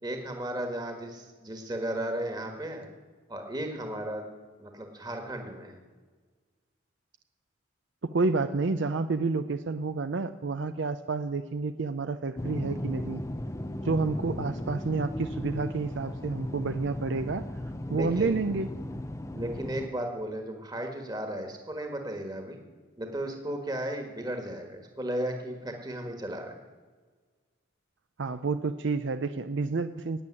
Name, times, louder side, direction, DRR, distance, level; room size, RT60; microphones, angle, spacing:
voice 1, 0.0-2.9 3.3-4.3 4.6-5.8 17.9-18.4 19.3-22.6 23.0-26.5, right 1 dB, 20° right, 3 dB, 1.6 m, -35 dB
voice 2, 8.1-13.2 13.8-17.5 17.9-18.7 28.2-30.2, right 3 dB, 70° right, 10 dB, 0.5 m, -29 dB
sound 1, 12.4-19.9, left 1 dB, 15° left, 0.6 m, -36 dB
16.0 x 8.7 x 9.8 m, 1.5 s
head